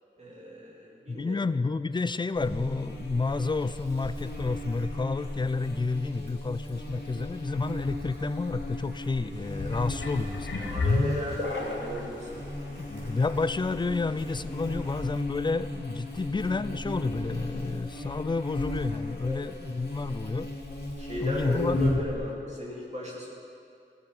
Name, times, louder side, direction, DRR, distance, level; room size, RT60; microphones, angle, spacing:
voice 1, 0.2-1.4 10.6-12.4 19.2-19.5 21.0-23.3, equal, 35° right, -5 dB, 2.3 m, -36 dB
voice 2, 1.1-10.7 12.8-20.5 21.2-21.9, left 3 dB, 25° left, 15 dB, 0.3 m, -30 dB
Buzz, 2.3-22.1, left 1 dB, 55° left, 2.3 m, -36 dB
sound 1, 9.3-14.9, equal, 65° right, 3.5 m, -48 dB
sound 2, 9.5-12.1 12.8-12.9, left 3 dB, 75° left, 1.1 m, -30 dB
14.5 x 7.7 x 5.4 m, 2.6 s
wide cardioid pair, 55°, 20 cm